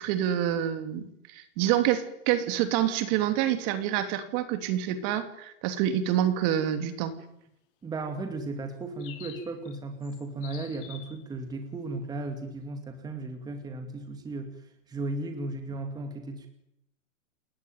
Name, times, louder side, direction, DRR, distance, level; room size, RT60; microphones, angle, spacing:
voice 1, 0.0-7.1, right 11 dB, 35° right, 9 dB, 3.1 m, -27 dB
voice 2, 7.8-16.5, right 2 dB, 10° right, 6 dB, 2.4 m, -35 dB
sound 1, 9.0-9.8 10.0-11.2, left 10 dB, 40° left, 5.5 m, -47 dB
29.0 x 19.5 x 9.4 m, 0.80 s
hypercardioid pair, 150°, 38 cm